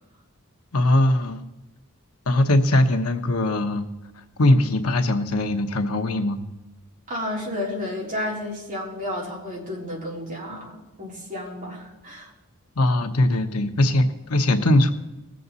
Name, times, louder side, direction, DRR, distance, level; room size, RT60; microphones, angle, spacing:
voice 1, 0.7-1.4 2.3-3.9 4.2-6.4 10.5-10.7 12.8-14.9, left 1 dB, 85° left, 7 dB, 1.1 m, -21 dB
voice 2, 7.1-12.3, left 1 dB, 40° right, -4 dB, 3.7 m, -32 dB
19.5 x 7.6 x 4.1 m, 1.0 s
head